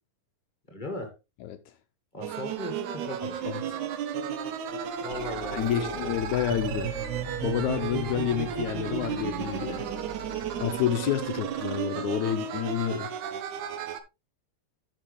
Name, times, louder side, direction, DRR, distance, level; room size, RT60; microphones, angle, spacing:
voice 1, 0.7-1.1 2.1-3.4 5.0-6.1, left 1 dB, 25° left, 1.0 m, -37 dB
sound 1, 2.2-14.0, right 8 dB, 70° right, 2.2 m, -33 dB
voice 2, 3.5-3.8 5.5-7.0 7.4-9.9 10.6-13.1, left 11 dB, 75° left, 1.9 m, -29 dB
sound 2, 5.1-11.6, left 1 dB, 30° right, 2.9 m, -42 dB
10.0 x 6.6 x 3.3 m
omnidirectional pair, 4.0 m